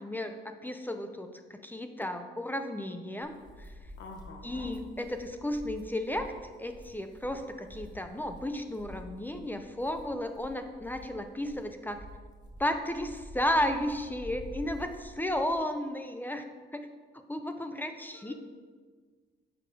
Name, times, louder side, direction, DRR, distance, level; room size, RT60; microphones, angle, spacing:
voice 1, 0.0-3.7 4.4-6.3 6.6-12.0 12.6-16.4 16.7-16.9 17.1-18.3, left 1 dB, 10° left, 7 dB, 0.5 m, -33 dB
sound 1, 3.2-15.6, equal, 20° right, 1.3 m, -48 dB
voice 2, 4.0-4.7 18.1-18.3, left 3 dB, 75° left, 2 dB, 1.2 m, -46 dB
6.7 x 4.9 x 3.7 m, 1.5 s
cardioid pair, 90°, 20 cm